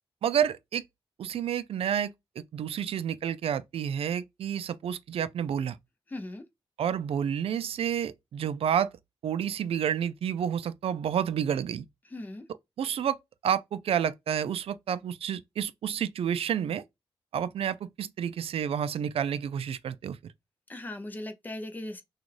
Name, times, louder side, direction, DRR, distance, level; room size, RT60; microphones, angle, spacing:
voice 1, 0.2-0.8 1.2-5.8 6.8-8.9 9.2-11.9 12.8-13.2 13.4-16.8 17.3-20.2, right 8 dB, 85° right, 0.4 m, -30 dB
voice 2, 6.1-6.4 12.1-12.4 20.7-22.0, left 1 dB, 20° left, 0.6 m, -38 dB
6.2 x 2.4 x 3.2 m
wide cardioid pair, 180°, 10 cm